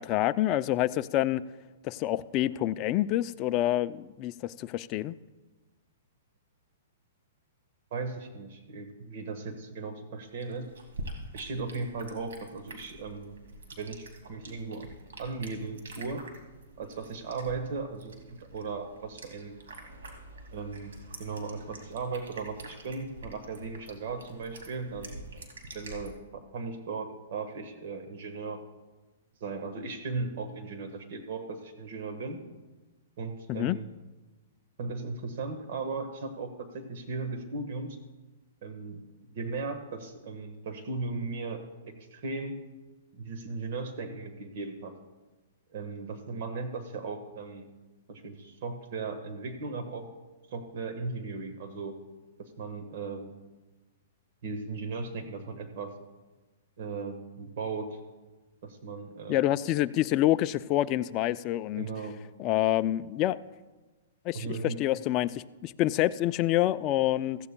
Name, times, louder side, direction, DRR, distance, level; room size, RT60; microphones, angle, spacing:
voice 1, 0.0-1.4 1.8-5.1 33.5-33.8 59.3-61.9 62.4-63.4 64.3-67.4, left 14 dB, 30° left, 12 dB, 0.3 m, -27 dB
voice 2, 7.9-10.7 11.3-13.4 13.7-14.9 15.2-16.3 16.8-19.6 20.5-25.5 25.7-28.6 29.4-32.4 33.2-33.9 34.8-38.0 38.6-39.0 39.3-41.6 42.1-42.6 43.1-44.9 45.7-47.7 48.1-50.1 50.5-52.0 52.4-53.3 54.4-55.9 56.8-58.0 58.6-59.4 61.8-62.2 64.3-64.8, right 4 dB, 55° right, 6 dB, 1.4 m, -37 dB
sound 1, 10.2-26.1, right 2 dB, 85° right, 2.3 m, -47 dB
15.5 x 14.5 x 2.2 m, 1.2 s
hypercardioid pair, 150°, 0 cm